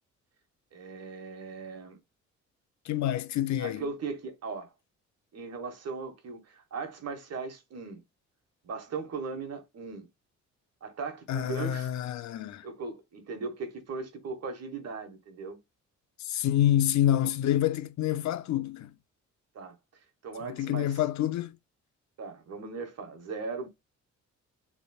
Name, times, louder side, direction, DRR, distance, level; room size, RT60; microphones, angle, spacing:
voice 1, 0.7-2.0 3.6-4.7 5.3-8.0 8.6-10.1 10.8-11.9 12.6-15.6 19.5-19.7 20.2-21.0 22.2-23.7, right 4 dB, 55° right, 1.4 m, -38 dB
voice 2, 2.9-3.9 11.3-12.7 16.2-18.9 20.4-21.6, left 12 dB, 70° left, 0.6 m, -27 dB
4.1 x 3.4 x 2.3 m
cardioid pair, 90°, 30 cm